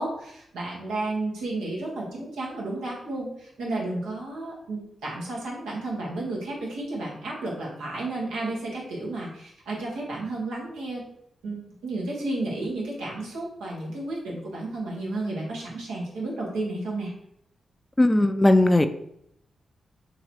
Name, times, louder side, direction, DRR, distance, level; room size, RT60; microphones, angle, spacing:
voice 1, 0.0-11.0 11.4-17.1, right 2 dB, 90° right, -4 dB, 1.2 m, -32 dB
voice 2, 18.0-18.9, left 1 dB, 20° left, 9 dB, 0.4 m, -18 dB
3.0 x 2.8 x 4.3 m, 0.74 s
supercardioid pair, 45°, 0 cm